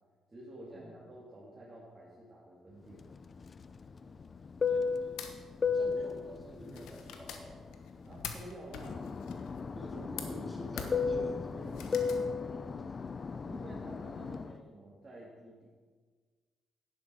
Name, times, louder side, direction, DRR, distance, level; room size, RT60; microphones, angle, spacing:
voice 1, 0.3-3.1 8.0-9.0 13.4-15.7, right 1 dB, 25° right, -7 dB, 2.8 m, -50 dB
Fixed-wing aircraft airplane, 3.0-8.4 8.7-14.6, left 5 dB, 40° left, 0.4 m, -35 dB
voice 2, 4.7-5.2 5.6-7.7 9.5-12.8, equal, ahead, -3 dB, 3.6 m, -47 dB
sound 1, 4.9-12.2, left 7 dB, 85° left, 1.1 m, -47 dB
11.0 x 10.0 x 4.9 m, 1.5 s
cardioid pair, 90°, 0 cm